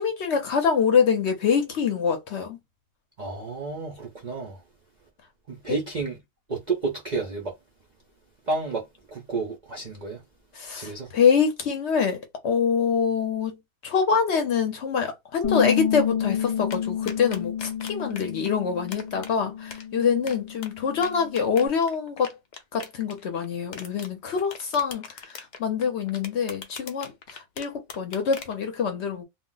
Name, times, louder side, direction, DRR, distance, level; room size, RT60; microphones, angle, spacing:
voice 1, 0.0-2.6 5.7-5.8 10.5-13.6 13.8-22.3 22.7-29.2, left 6 dB, 60° left, 0.8 m, -25 dB
voice 2, 3.2-4.6 5.5-6.2 6.5-7.5 8.5-8.8 9.1-10.2 10.8-11.1, right 3 dB, 55° right, 0.4 m, -30 dB
Bass guitar, 15.4-21.7, left 9 dB, 25° left, 0.7 m, -30 dB
sound 1, 16.7-18.5 18.9-19.3 19.7-20.7 21.0-23.5 23.7-24.1 24.4-28.6, left 5 dB, 90° left, 0.4 m, -40 dB
2.4 x 2.0 x 3.8 m
omnidirectional pair, 1.5 m